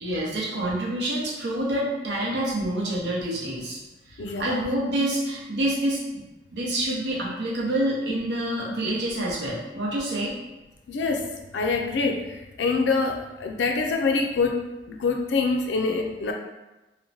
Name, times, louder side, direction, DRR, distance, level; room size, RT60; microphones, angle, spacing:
voice 1, 0.0-3.8 4.1-6.2 6.5-10.3, right 1 dB, 75° right, -5 dB, 0.7 m, -27 dB
voice 2, 4.2-4.5 10.9-16.3, left 4 dB, 85° left, 3 dB, 0.4 m, -25 dB
3.0 x 2.1 x 2.6 m, 1.0 s
head